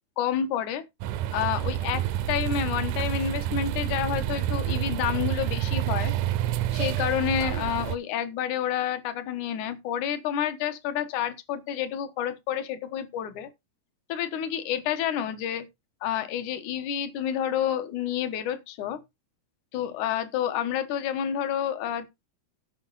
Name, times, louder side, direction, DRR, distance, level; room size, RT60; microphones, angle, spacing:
voice 1, 0.2-0.8 1.3-6.1 6.7-13.5 14.1-15.6 16.0-19.0 19.7-22.3, left 9 dB, 70° left, 2.6 m, -29 dB
sound 1, 1.0-8.0, right 12 dB, 80° right, 2.1 m, -28 dB
15.5 x 5.4 x 4.0 m
omnidirectional pair, 3.7 m